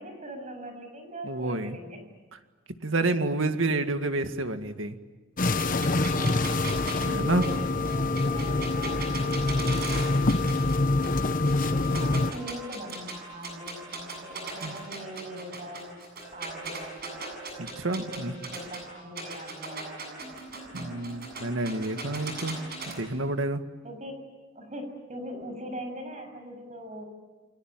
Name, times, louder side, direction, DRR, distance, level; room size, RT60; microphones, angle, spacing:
voice 1, 0.0-2.0 6.0-6.8 7.3-9.9 11.7-16.0 16.3-17.3 18.0-20.3 23.8-24.2 24.6-27.0, equal, 35° right, 5 dB, 7.3 m, -41 dB
voice 2, 1.2-1.8 2.8-5.0 7.1-7.4 14.6-14.8 17.6-18.3 20.7-22.6 23.0-23.6, right 2 dB, 85° right, 8 dB, 1.9 m, -29 dB
sound 1, 5.4-12.3, left 2 dB, 45° left, 1.0 m, -26 dB
sound 2, 5.6-10.8 11.0-13.1 13.4-18.8 19.2-22.9, right 4 dB, 50° right, 7.9 m, -38 dB
sound 3, 12.4-14.8 16.2-18.8 20.2-22.8, right 4 dB, 10° right, 6.2 m, -48 dB
29.5 x 22.0 x 9.1 m, 1.3 s
head